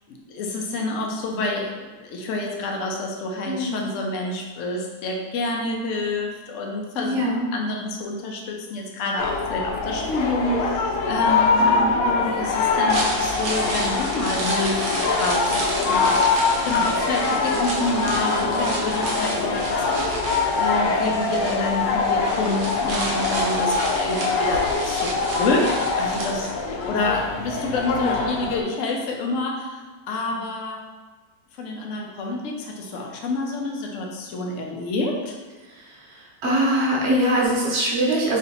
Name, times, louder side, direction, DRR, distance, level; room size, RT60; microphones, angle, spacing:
voice 1, 0.1-7.2 7.5-11.7 12.0-15.6 15.9-19.8 20.6-25.6 26.0-26.5 26.8-30.8 31.6-35.4, left 2 dB, 65° left, 0 dB, 0.8 m, -28 dB
voice 2, 3.4-3.8 6.9-7.4 11.6-12.0 18.0-18.1 18.5-18.9 35.7-38.4, right 1 dB, 50° right, -4 dB, 1.0 m, -23 dB
sound 1, 9.2-28.6, left 4 dB, 85° left, 1.2 m, -23 dB
sound 2, 12.7-26.9 27.2-27.3, right 2 dB, 70° right, 0.5 m, -32 dB
3.2 x 2.8 x 4.0 m, 1.3 s
omnidirectional pair, 1.9 m